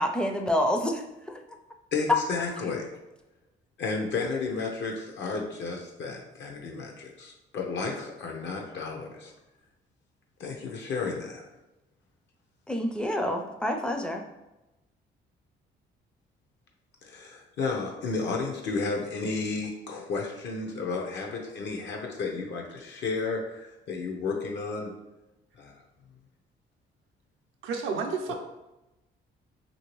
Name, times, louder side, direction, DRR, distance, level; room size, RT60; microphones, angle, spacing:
voice 1, 0.0-1.4 12.7-14.2, equal, 5° left, 3 dB, 0.4 m, -28 dB
voice 2, 1.9-2.9 3.8-9.3 10.4-11.4 17.0-24.9 25.6-25.8 28.3-28.4, left 4 dB, 65° left, 1 dB, 0.6 m, -32 dB
voice 3, 27.6-28.3, right 5 dB, 80° right, 2 dB, 0.5 m, -30 dB
2.9 x 2.7 x 3.0 m, 0.98 s
cardioid pair, 90°, 20 cm